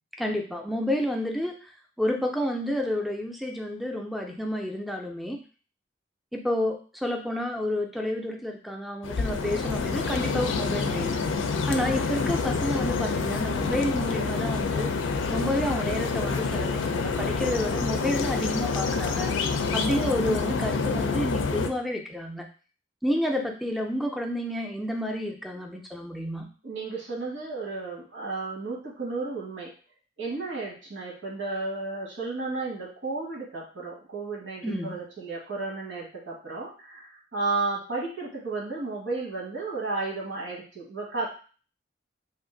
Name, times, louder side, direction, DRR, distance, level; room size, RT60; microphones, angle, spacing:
voice 1, 0.2-1.5 2.0-5.4 6.3-11.2 11.7-14.9 15.3-19.3 19.7-22.4 23.0-26.5 34.6-35.0, left 1 dB, ahead, 2 dB, 0.4 m, -30 dB
sound 1, 9.0-21.7, left 4 dB, 90° left, 0.4 m, -27 dB
voice 2, 26.6-29.7 30.2-41.3, right 3 dB, 85° right, -2 dB, 1.3 m, -33 dB
2.8 x 2.5 x 3.7 m, 0.38 s
head